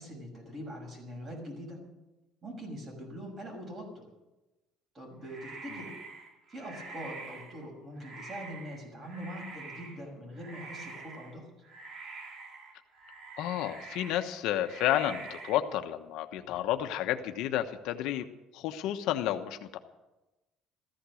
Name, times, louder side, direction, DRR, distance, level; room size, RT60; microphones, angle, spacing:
voice 1, 0.0-1.8 2.4-4.1 4.9-5.9 6.5-11.5, equal, 30° right, 1 dB, 6.2 m, -43 dB
sound 1, 5.3-7.7 8.0-10.0 10.4-11.4 11.6-14.3 14.6-15.6, right 4 dB, 45° right, 2.6 m, -46 dB
voice 2, 13.4-18.2 18.5-19.8, left 12 dB, 70° left, 7 dB, 1.1 m, -31 dB
14.5 x 14.5 x 6.4 m, 1.0 s
cardioid pair, 155°, 0 cm